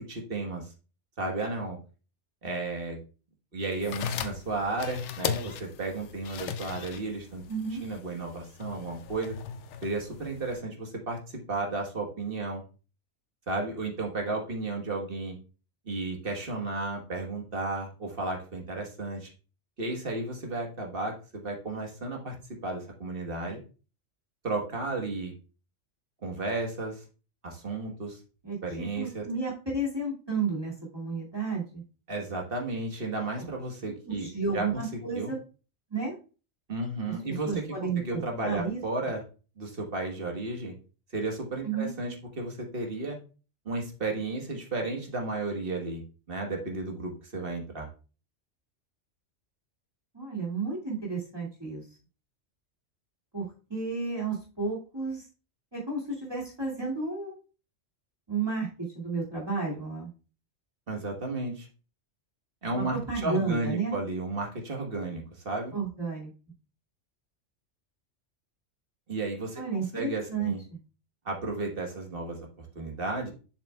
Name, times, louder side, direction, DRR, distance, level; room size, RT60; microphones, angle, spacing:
voice 1, 0.1-0.7 1.2-1.8 2.4-3.0 3.5-7.4 7.8-9.4 9.8-12.6 13.5-15.4 15.8-19.3 19.8-22.3 22.6-23.6 24.4-25.3 26.2-27.0 27.4-28.2 28.6-29.2 32.1-34.3 34.5-35.3 36.7-39.2 39.6-40.7 41.1-43.2 43.6-46.0 46.3-47.9 60.9-61.7 62.6-65.7 69.1-70.6 71.2-73.3, right 2 dB, 50° right, 2 dB, 1.5 m, -33 dB
sound 1, 3.7-10.6, left 7 dB, 75° left, 0.9 m, -38 dB
voice 2, 7.5-7.8 28.4-31.8 34.1-35.4 35.9-36.1 37.0-37.1 37.4-38.8 41.6-41.9 50.1-51.8 53.3-55.2 55.7-57.3 58.3-60.1 62.7-63.9 65.7-66.3 69.6-70.8, right 4 dB, 20° right, -5 dB, 2.2 m, -32 dB
7.1 x 6.5 x 2.3 m, 0.35 s
omnidirectional pair, 1.2 m